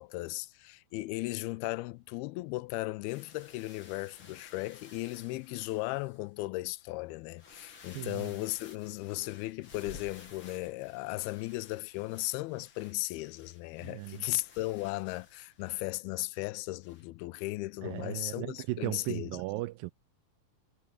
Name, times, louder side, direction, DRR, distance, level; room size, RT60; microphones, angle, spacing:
voice 1, 0.0-19.4, left 20 dB, 80° left, 2.4 m, -36 dB
sound 1, 3.1-6.3 6.8-6.9 7.3-15.8 16.8-17.1, left 5 dB, 40° left, 2.5 m, -55 dB
voice 2, 8.0-8.3 13.8-14.3 17.8-19.9, right 18 dB, 80° right, 2.0 m, -36 dB
omnidirectional pair, 4.6 m